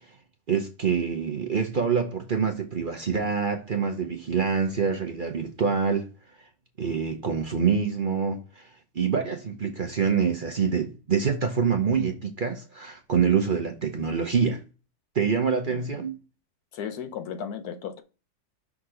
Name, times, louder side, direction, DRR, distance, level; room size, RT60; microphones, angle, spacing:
voice 1, 0.5-6.1 6.8-8.7 8.9-14.6 15.1-16.2, right 6 dB, 45° right, 0.7 m, -26 dB
voice 2, 16.7-18.0, left 7 dB, 80° left, 1.3 m, -35 dB
6.0 x 3.7 x 4.9 m
omnidirectional pair, 1.6 m